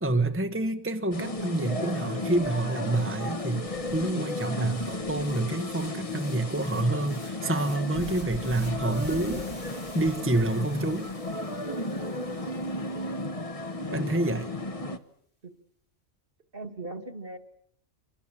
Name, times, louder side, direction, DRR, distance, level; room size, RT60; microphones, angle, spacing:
voice 1, 0.0-9.5 9.9-11.1 13.9-14.5, right 2 dB, 10° right, 1.2 m, -28 dB
sound 1, 1.1-15.0, left 2 dB, 30° left, 1.4 m, -34 dB
sound 2, 2.6-2.7 2.9-13.3, left 2 dB, 85° left, 4.7 m, -53 dB
voice 2, 13.8-14.3 15.4-15.5 16.5-17.4, right 2 dB, 50° right, 2.3 m, -40 dB
28.0 x 25.0 x 7.5 m
omnidirectional pair, 1.2 m